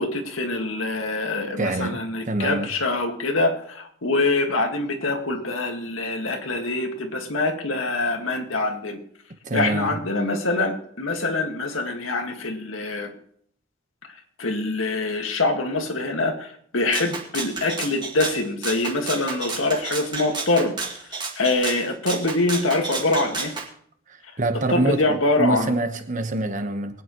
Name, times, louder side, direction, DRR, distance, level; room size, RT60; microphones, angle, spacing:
voice 1, 0.0-9.0 9.5-13.1 14.4-20.7 21.4-23.5 24.7-25.7, left 2 dB, 85° left, 1.9 m, -24 dB
voice 2, 1.6-2.7 9.4-10.0 24.1-27.0, right 2 dB, 40° right, 1.2 m, -26 dB
Rattle (instrument), 16.9-23.7, right 4 dB, 25° right, 2.1 m, -31 dB
23.5 x 9.2 x 3.1 m
head